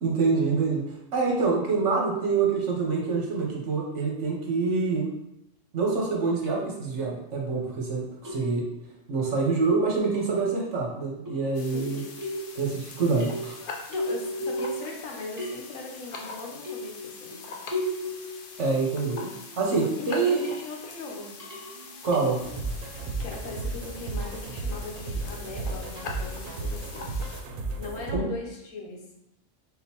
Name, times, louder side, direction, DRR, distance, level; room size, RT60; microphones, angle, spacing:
voice 1, 0.0-5.1 5.7-8.7 9.1-12.0 12.5-13.6 18.6-20.4 22.0-22.4 28.1-28.2, right 4 dB, 65° right, -2 dB, 1.3 m, -26 dB
sound 1, 6.4-6.5 8.2-8.9 10.1-10.7 11.3-12.8 13.2-15.1 15.4-16.0 16.6-19.6 20.1-20.7 21.4-22.5, equal, 20° right, 0.5 m, -36 dB
sound 2, 11.5-27.4, left 4 dB, 55° left, 0.6 m, -43 dB
voice 2, 11.7-12.0 13.9-17.3 20.0-21.3 23.2-27.1 27.8-29.0, left 3 dB, 85° left, 0 dB, 1.3 m, -39 dB
sound 3, 22.4-28.2, right 3 dB, 80° right, 1.0 m, -34 dB
3.9 x 3.9 x 2.9 m, 0.84 s
omnidirectional pair, 1.3 m